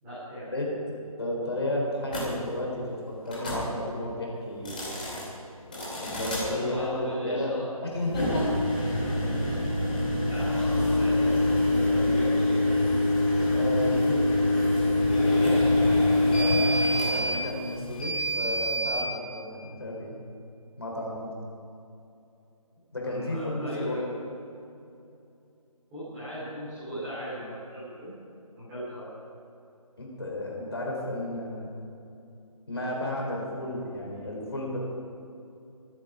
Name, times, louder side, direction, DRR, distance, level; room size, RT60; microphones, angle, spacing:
voice 1, 0.0-0.5 5.7-5.9 6.3-7.6 10.1-12.6 15.1-15.8 23.0-24.1 25.9-28.2 28.5-29.1, equal, 5° right, -16 dB, 3.5 m, -37 dB
voice 2, 0.5-4.9 6.0-7.5 7.9-8.5 9.0-9.1 13.5-14.2 16.3-16.6 17.1-20.1 20.8-21.3 22.9-24.0 30.0-31.7 32.7-34.8, left 1 dB, 45° left, -2 dB, 3.9 m, -33 dB
sound 1, 2.1-2.2 3.3-3.6 4.5-5.2 5.7-6.4 8.0-19.1, left 1 dB, 15° left, 2.7 m, -25 dB
25.5 x 9.2 x 4.9 m, 2.7 s
figure-of-eight pair, 180°, 19 cm